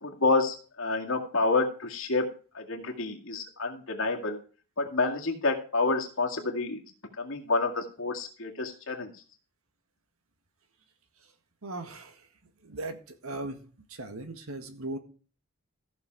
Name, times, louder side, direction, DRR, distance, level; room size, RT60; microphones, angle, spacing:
voice 1, 0.0-2.2 2.5-4.4 4.8-6.8 7.2-9.1, left 3 dB, 65° left, 2 dB, 2.1 m, -28 dB
voice 2, 11.6-12.2 12.6-13.6 13.9-15.0, right 2 dB, 75° right, 8 dB, 1.7 m, -38 dB
14.5 x 6.6 x 4.6 m, 0.39 s
head